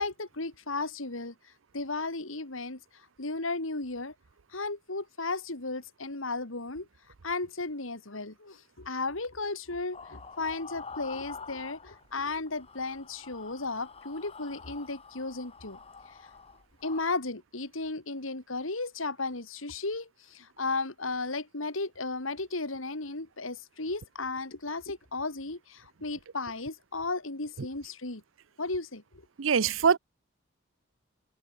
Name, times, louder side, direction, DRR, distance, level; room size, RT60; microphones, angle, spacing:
voice 1, 0.0-1.3 1.7-2.8 3.2-4.1 4.5-6.9 7.2-15.8 16.2-16.3 16.8-28.2 28.6-29.0, left 3 dB, 85° left, 3.0 m, -34 dB
sound 1, 9.9-12.2 12.5-17.0, left 5 dB, 30° left, 1.6 m, -47 dB
voice 2, 29.4-30.0, right 6 dB, 75° right, 0.6 m, -23 dB
head